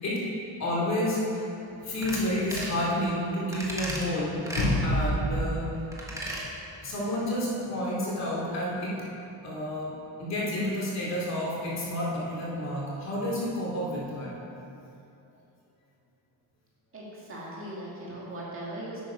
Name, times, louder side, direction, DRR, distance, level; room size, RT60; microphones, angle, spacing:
voice 1, 0.6-5.7 6.8-9.0 9.4-9.9 10.2-14.3, left 1 dB, 40° left, -6 dB, 2.9 m, -29 dB
sound 1, 2.0-2.2 2.5-2.8 3.5-4.1 4.5-4.7 5.9-6.5 6.8-6.9, right 1 dB, 5° right, 1.4 m, -35 dB
voice 2, 16.9-19.0, right 1 dB, 30° right, -6 dB, 2.4 m, -39 dB
11.5 x 8.4 x 5.2 m, 2.7 s
cardioid pair, 175°, 41 cm